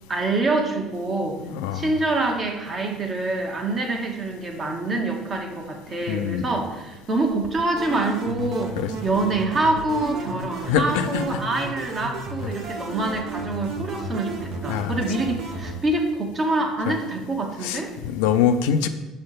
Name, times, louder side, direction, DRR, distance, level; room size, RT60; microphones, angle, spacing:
voice 1, 0.1-1.4 1.7-8.8 9.0-17.9, right 2 dB, 30° right, 3 dB, 1.1 m, -26 dB
voice 2, 1.4-1.9 6.1-6.5 8.8-8.9 10.7-11.2 14.7-15.0 16.9-17.0 17.6-18.9, left 8 dB, 85° left, 9 dB, 0.4 m, -23 dB
sound 1, 7.8-15.7, right 2 dB, 60° right, 1.0 m, -33 dB
6.3 x 3.3 x 5.8 m, 1.1 s
supercardioid pair, 105°, 0 cm